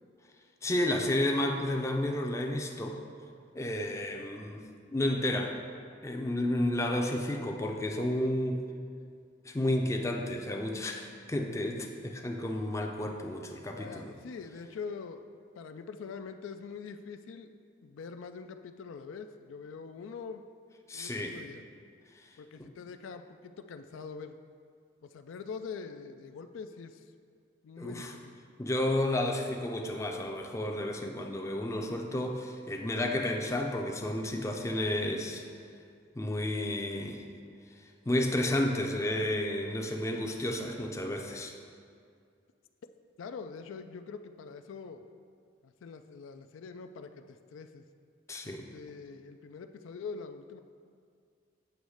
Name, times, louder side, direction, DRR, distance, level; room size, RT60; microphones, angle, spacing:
voice 1, 0.6-3.0 3.5-4.6 4.9-5.5 6.0-8.6 9.4-14.1 20.9-21.4 22.6-22.7 27.8-28.1 28.6-35.4 36.2-37.2 38.1-41.5 48.3-48.7, left 1 dB, 15° left, 2 dB, 0.4 m, -31 dB
voice 2, 13.8-15.2 15.6-17.5 17.8-20.4 20.9-21.6 22.4-24.4 25.0-27.0 27.6-28.4 43.2-45.1 45.6-47.8 48.4-50.6, left 5 dB, 80° left, 8 dB, 0.3 m, -44 dB
7.9 x 3.1 x 6.3 m, 2.3 s
head